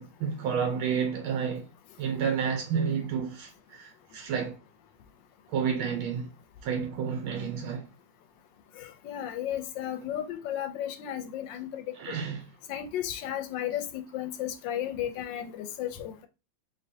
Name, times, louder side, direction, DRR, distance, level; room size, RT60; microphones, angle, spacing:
voice 1, 0.0-1.7 2.0-4.6 5.5-6.3 6.6-7.9 12.0-12.4, right 7 dB, 80° right, 1.5 m, -30 dB
voice 2, 8.8-12.2 12.7-16.3, left 11 dB, 75° left, 1.2 m, -34 dB
3.8 x 3.2 x 2.7 m
omnidirectional pair, 2.2 m